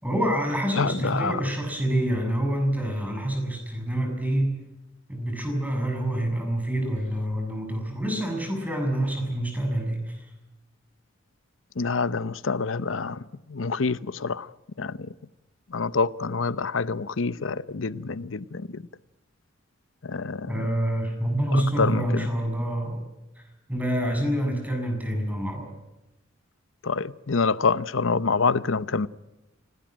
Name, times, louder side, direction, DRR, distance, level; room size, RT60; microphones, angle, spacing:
voice 1, 0.0-4.6 5.1-10.2 20.5-23.0 23.4-25.7, right 1 dB, 10° right, 6.6 m, -27 dB
voice 2, 0.8-1.3 11.8-13.2 13.5-14.5 14.8-15.0 15.7-18.8 20.1-20.5 21.5-22.3 26.8-29.1, left 4 dB, 70° left, 0.8 m, -26 dB
26.0 x 18.5 x 9.0 m
head